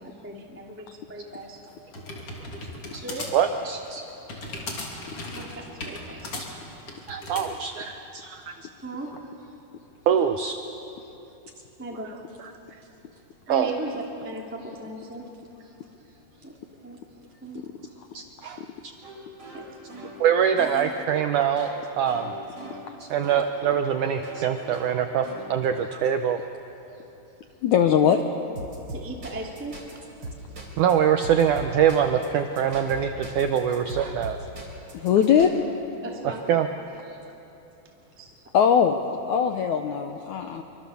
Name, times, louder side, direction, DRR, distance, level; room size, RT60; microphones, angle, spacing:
voice 1, 0.0-1.8 3.0-3.3 5.3-6.6 8.8-9.1 11.8-12.1 13.5-15.3 16.4-16.5 16.8-17.0 17.4-17.7 19.5-19.6 20.6-20.9 28.1-28.2 28.9-29.8 35.1-35.3 36.0-36.4 37.8-38.3, right 2 dB, 5° right, -1 dB, 1.3 m, -37 dB
sound 1, 1.4-7.5, left 2 dB, 40° left, 3.4 m, -37 dB
voice 2, 3.3-4.0 6.4-6.5 7.1-8.6 10.1-10.6 13.5-13.7 18.1-18.9 20.2-22.3 23.0-26.4 30.8-34.4 36.2-36.7, right 8 dB, 85° right, 7 dB, 1.7 m, -24 dB
sound 2, 19.0-23.6 24.2-25.9 28.5-29.9 30.2-30.9 31.2-32.3 32.5-35.5, right 1 dB, 25° right, 4.1 m, -40 dB
voice 3, 27.6-28.2 34.9-35.5 38.5-39.0 39.3-40.6, left 8 dB, 85° left, 5 dB, 1.7 m, -20 dB
26.0 x 24.5 x 7.1 m, 3.0 s
omnidirectional pair, 4.7 m